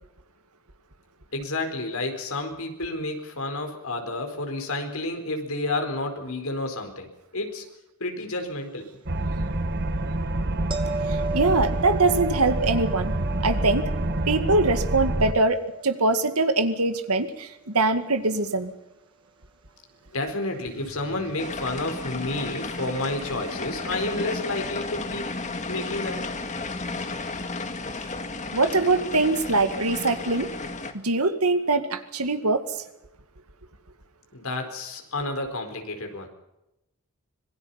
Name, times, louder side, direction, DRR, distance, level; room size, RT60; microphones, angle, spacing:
voice 1, 1.3-7.7 8.0-8.9 20.1-25.3 25.7-26.2 34.3-36.3, left 2 dB, 70° left, 5 dB, 4.6 m, -30 dB
sound 1, 9.1-15.3, right 1 dB, 50° right, 1.6 m, -27 dB
sound 2, 10.7-17.7 23.0-23.1, right 3 dB, 20° right, 2.1 m, -37 dB
voice 2, 11.1-13.1 13.4-13.9 14.3-18.7 28.5-30.5 31.0-32.6, right 3 dB, 85° right, 9 dB, 2.0 m, -23 dB
sound 3, 21.4-30.9, left 3 dB, 30° left, 1.8 m, -33 dB
26.0 x 20.5 x 5.7 m, 0.90 s
head